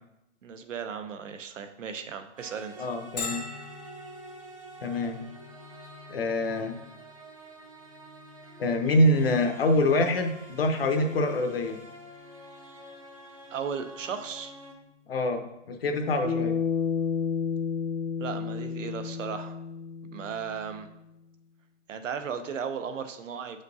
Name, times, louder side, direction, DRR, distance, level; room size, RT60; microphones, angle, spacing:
voice 1, 0.4-2.9 13.5-14.5 18.2-19.5 20.1-20.9 21.9-23.6, right 7 dB, 85° right, 8 dB, 0.8 m, -36 dB
sound 1, 2.4-14.7, right 1 dB, 30° right, 0.5 m, -47 dB
voice 2, 2.8-3.4 4.8-5.2 6.1-6.7 8.6-11.8 15.1-15.4 15.8-16.6, left 1 dB, 50° left, 5 dB, 0.8 m, -25 dB
Bell, 3.2-18.6, left 3 dB, 35° left, 0.4 m, -47 dB
Bass guitar, 16.2-20.6, left 6 dB, 75° left, 1.2 m, -31 dB
7.3 x 5.1 x 2.7 m, 0.88 s
hypercardioid pair, 180°, 37 cm